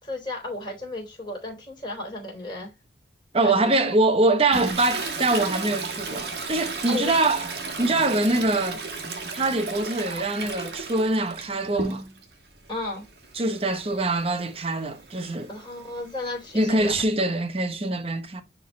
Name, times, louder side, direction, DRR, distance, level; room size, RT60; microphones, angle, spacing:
voice 1, 0.0-2.7 3.4-3.6 6.9-7.3 12.7-13.0 15.5-16.9, left 2 dB, 25° left, 3.8 m, -34 dB
voice 2, 3.3-7.5 7.8-8.8 9.3-12.0 13.3-15.5 16.5-18.4, right 2 dB, 30° right, 0.9 m, -24 dB
Toilet flush, 4.5-12.3 12.7-17.0, right 3 dB, 65° right, 1.5 m, -35 dB
10.5 x 3.8 x 3.1 m
head